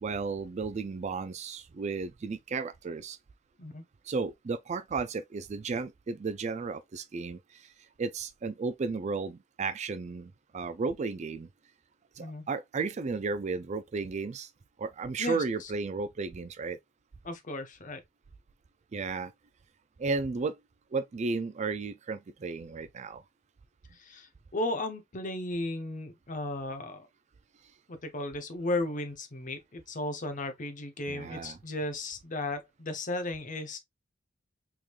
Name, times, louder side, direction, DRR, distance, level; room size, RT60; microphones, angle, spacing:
voice 1, 0.0-3.2 4.1-7.4 8.0-11.5 12.2-14.5 14.8-16.8 18.9-19.3 20.0-20.5 20.9-23.2 31.1-31.6, right 4 dB, 40° right, 0.4 m, -33 dB
voice 2, 15.2-15.7 17.2-18.0 23.9-27.1 27.9-33.8, left 2 dB, 45° left, 0.8 m, -35 dB
3.6 x 3.1 x 2.4 m
head